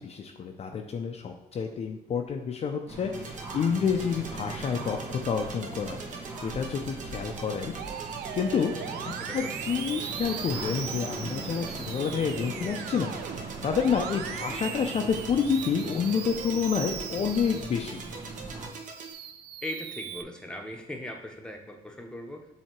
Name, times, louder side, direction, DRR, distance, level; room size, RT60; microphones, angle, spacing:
voice 1, 0.0-7.7 8.3-8.7 9.3-13.1 13.6-18.0, left 6 dB, 40° left, 3 dB, 0.6 m, -29 dB
sound 1, 2.9-18.7, right 3 dB, 20° right, 2.2 m, -41 dB
sound 2, 3.1-19.1, right 4 dB, 50° right, 1.0 m, -43 dB
Musical instrument, 7.8-18.2 18.7-20.2, right 9 dB, 75° right, 0.5 m, -39 dB
voice 2, 8.7-9.5 18.6-18.7 19.6-22.5, left 1 dB, 5° left, 2 dB, 0.9 m, -39 dB
7.2 x 2.9 x 4.5 m, 0.95 s
cardioid pair, 110°, 17 cm